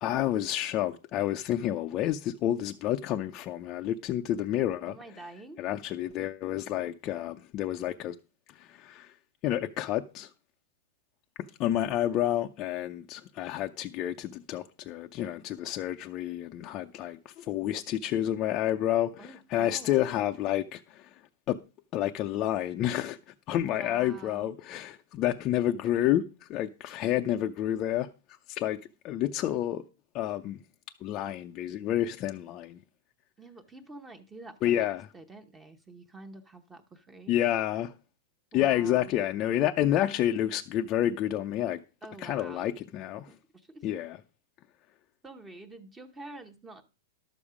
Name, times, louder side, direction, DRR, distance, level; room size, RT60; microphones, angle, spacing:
voice 1, 0.0-5.0 5.6-8.1 8.5-9.1 9.4-10.3 11.4-21.2 21.5-21.6 21.9-28.1 28.5-29.9 30.1-30.6 31.0-32.8 34.6-35.1 37.3-37.9 38.5-41.8 42.2-43.3 43.8-44.2, left 12 dB, 30° left, 0.5 m, -29 dB
voice 2, 4.9-5.6 19.2-20.1 23.6-24.5 33.4-34.9 35.1-37.3 38.5-39.1 42.0-42.7 43.3-43.8 45.2-46.8, right 2 dB, 10° right, 0.9 m, -47 dB
12.0 x 7.1 x 4.9 m
supercardioid pair, 160°, 0 cm